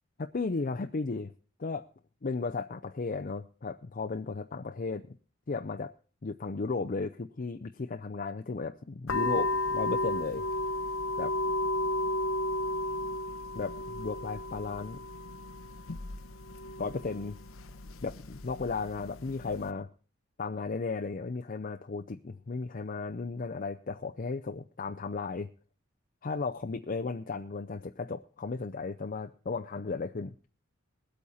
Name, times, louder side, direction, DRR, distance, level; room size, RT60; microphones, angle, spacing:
voice 1, 0.2-1.3 1.6-1.9 2.2-5.2 5.5-5.9 6.2-10.5 11.2-11.3 13.5-15.0 16.8-17.4 18.0-19.9 20.4-25.5 26.2-30.3, left 4 dB, 45° left, 6 dB, 0.5 m, -35 dB
sound 1, 9.1-19.7, left 1 dB, 85° left, 0.9 m, -34 dB
20.5 x 8.5 x 4.2 m, 0.39 s
head